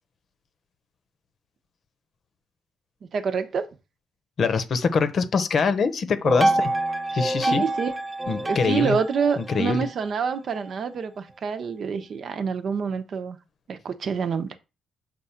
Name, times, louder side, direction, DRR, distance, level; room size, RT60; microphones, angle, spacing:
voice 1, 3.0-3.7 7.4-7.9 8.4-13.4 13.7-14.6, right 6 dB, 55° right, 0.9 m, -27 dB
voice 2, 4.4-6.7 7.1-7.6 8.3-9.0 9.4-9.8, left 5 dB, 50° left, 0.9 m, -23 dB
sound 1, 6.2-10.7, right 1 dB, 25° right, 0.9 m, -27 dB
6.9 x 2.6 x 5.7 m
cardioid pair, 90°, 0 cm